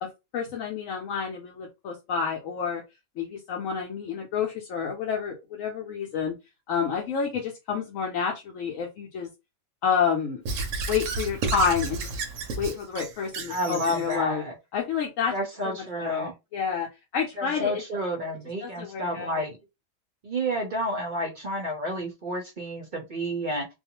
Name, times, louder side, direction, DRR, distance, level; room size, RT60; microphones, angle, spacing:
voice 1, 0.0-2.8 3.2-6.3 6.7-9.3 9.8-10.4 10.9-12.1 12.6-14.4 14.7-15.3 15.6-17.8 18.6-19.4, left 6 dB, 75° left, 0 dB, 1.0 m, -29 dB
Squeak / Writing, 10.5-14.2, right 3 dB, 70° right, 0.9 m, -32 dB
voice 2, 13.5-14.5 15.3-16.3 17.4-19.6 20.2-23.7, equal, 50° right, 1 dB, 0.6 m, -30 dB
2.5 x 2.3 x 2.8 m, 0.24 s
omnidirectional pair, 1.4 m